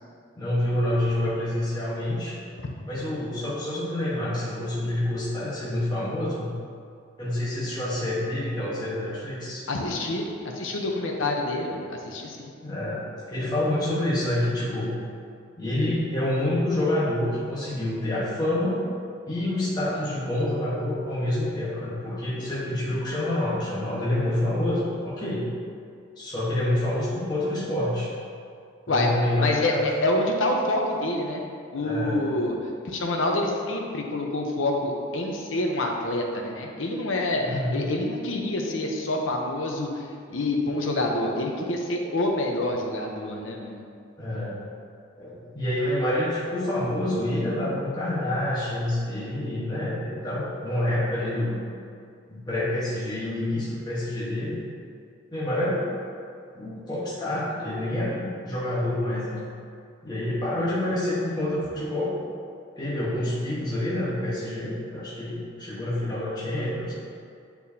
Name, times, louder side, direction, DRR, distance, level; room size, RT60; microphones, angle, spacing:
voice 1, 0.3-2.3 2.8-6.5 7.2-9.6 12.6-15.0 15.6-18.8 19.3-25.5 26.2-28.1 28.9-29.9 31.8-32.2 37.4-37.8 44.2-44.6 45.2-51.6 52.3-54.6 55.3-55.8 56.5-59.5 60.0-62.1 62.8-66.9, left 1 dB, 20° left, -9 dB, 1.2 m, -27 dB
voice 2, 9.7-12.5 28.9-32.6 32.8-43.8, left 1 dB, 85° left, 1 dB, 0.8 m, -27 dB
9.3 x 4.6 x 2.8 m, 2.3 s
head